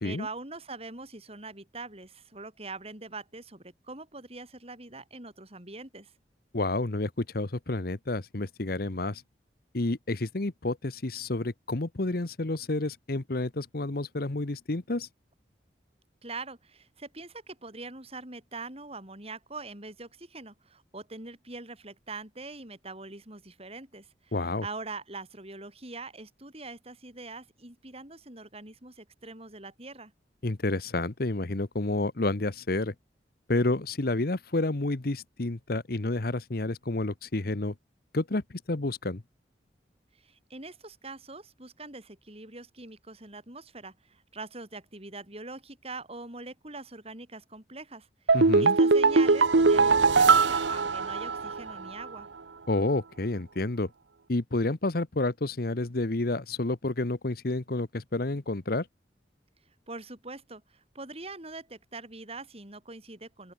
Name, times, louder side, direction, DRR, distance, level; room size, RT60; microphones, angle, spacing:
voice 1, 0.0-6.1 16.2-24.4 24.6-30.1 40.2-52.3 59.9-63.5, right 3 dB, 35° right, 5.9 m, -43 dB
voice 2, 6.5-9.2 9.7-15.1 24.3-24.7 30.4-32.9 33.5-37.7 38.1-39.2 48.3-48.8 52.7-53.9 54.3-58.9, left 2 dB, 55° left, 1.1 m, -30 dB
sound 1, 48.3-51.7 52.0-52.1, right 4 dB, 90° right, 1.0 m, -21 dB
open air
head